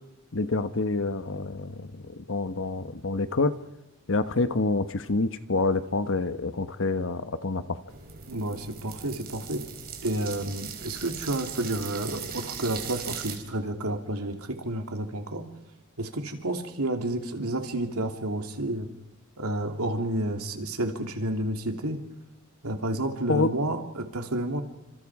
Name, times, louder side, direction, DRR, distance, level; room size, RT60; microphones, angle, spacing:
voice 1, 0.3-3.6 4.1-7.8 23.3-23.5, left 3 dB, 60° left, 11 dB, 1.2 m, -27 dB
sound 1, 7.9-13.4, right 7 dB, 45° right, 3.7 m, -39 dB
voice 2, 8.3-9.6 10.0-15.4 16.0-18.9 19.4-22.0 22.6-24.6, right 1 dB, 75° right, 4 dB, 3.0 m, -30 dB
30.0 x 26.5 x 4.9 m, 0.99 s
head